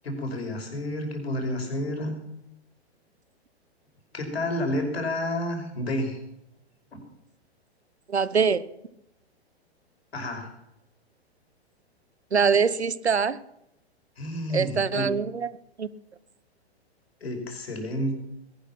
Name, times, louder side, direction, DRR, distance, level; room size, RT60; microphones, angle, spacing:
voice 1, 0.0-2.1 4.1-6.2 6.9-7.0 10.1-10.5 14.2-15.1 17.2-18.2, left 1 dB, 65° left, 4 dB, 5.3 m, -30 dB
voice 2, 8.1-8.6 12.3-13.4 14.5-15.5 15.8-15.9, right 6 dB, 75° right, 18 dB, 1.0 m, -23 dB
20.0 x 12.0 x 5.8 m, 0.84 s
figure-of-eight pair, 110°, 33 cm